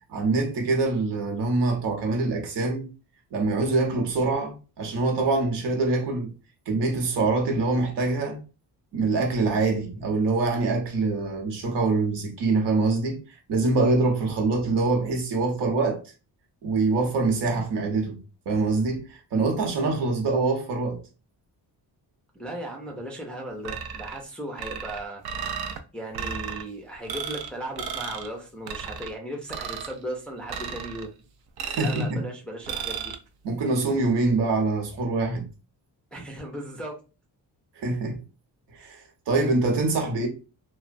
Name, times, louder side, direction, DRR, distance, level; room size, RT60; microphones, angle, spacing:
voice 1, 0.1-2.9 3.3-6.3 6.7-8.4 8.9-16.0 16.6-18.2 18.5-21.0 31.6-32.2 33.4-35.5 37.8-38.2 38.7-40.3, right 3 dB, 85° right, 1.0 m, -24 dB
voice 2, 22.3-25.2 25.5-25.6 25.9-31.1 31.7-33.1 36.1-37.0, right 1 dB, 5° left, 0.4 m, -36 dB
sound 1, 23.7-24.2 24.6-25.8 26.1-26.6 27.1-27.5 27.8-28.3 28.7-29.1 29.5-30.0 30.5-31.1 31.6-32.1 32.7-33.2, right 7 dB, 65° right, 0.5 m, -34 dB
3.0 x 2.1 x 2.4 m
wide cardioid pair, 170°, 40 cm